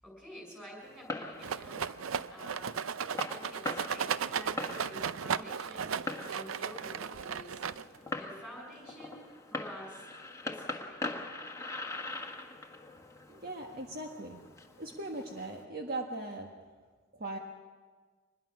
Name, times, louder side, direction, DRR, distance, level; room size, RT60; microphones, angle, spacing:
voice 1, 0.0-1.9 2.3-2.8 3.2-6.0 6.3-7.6 8.0-10.1 10.4-11.0, equal, 5° right, 0 dB, 6.2 m, -49 dB
Fireworks, 0.8-15.6, left 2 dB, 15° left, 1.5 m, -43 dB
Rattle, 1.4-8.1, right 7 dB, 85° right, 0.5 m, -35 dB
voice 2, 13.3-14.4 14.8-16.5 17.1-17.4, right 2 dB, 50° right, 2 dB, 1.5 m, -39 dB
24.5 x 21.5 x 6.2 m, 1.4 s
head